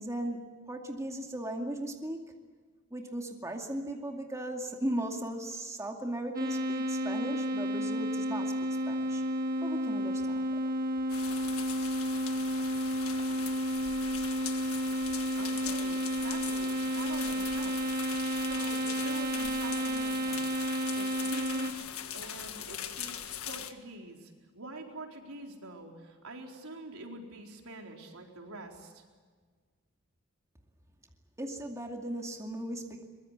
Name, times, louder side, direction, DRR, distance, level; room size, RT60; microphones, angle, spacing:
voice 1, 0.0-2.2 2.9-8.5 8.9-9.2 9.6-10.7 31.4-33.1, right 1 dB, 15° right, 2 dB, 2.4 m, -37 dB
sound 1, 6.3-21.7, equal, 45° right, 2.3 m, -31 dB
sound 2, 11.1-23.7, left 9 dB, 85° left, 1.6 m, -41 dB
voice 2, 15.2-16.7 16.9-17.9 18.4-20.5 20.9-21.9 22.1-29.0, right 2 dB, 85° right, 1 dB, 4.4 m, -46 dB
23.5 x 22.0 x 8.3 m, 1.5 s
head